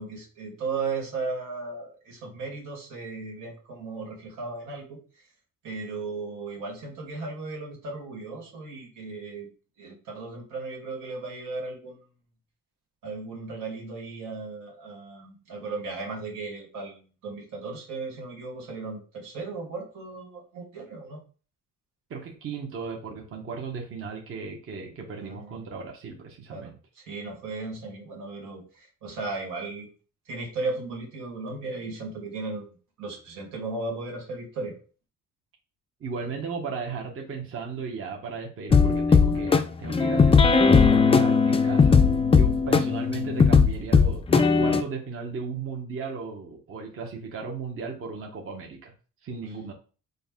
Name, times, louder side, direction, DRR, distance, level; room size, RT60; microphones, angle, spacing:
voice 1, 0.0-5.0 5.6-9.5 9.8-12.0 13.0-21.2 25.2-25.6 26.5-29.9 30.3-34.7, right 3 dB, 90° right, 0 dB, 1.5 m, -36 dB
voice 2, 22.1-26.8 36.0-42.0 42.3-48.9 49.2-49.7, right 5 dB, 45° right, 0 dB, 0.8 m, -36 dB
sound 1, 38.7-44.8, left 5 dB, 20° left, 0.3 m, -18 dB
4.0 x 2.1 x 3.5 m, 0.37 s
cardioid pair, 90°, 30 cm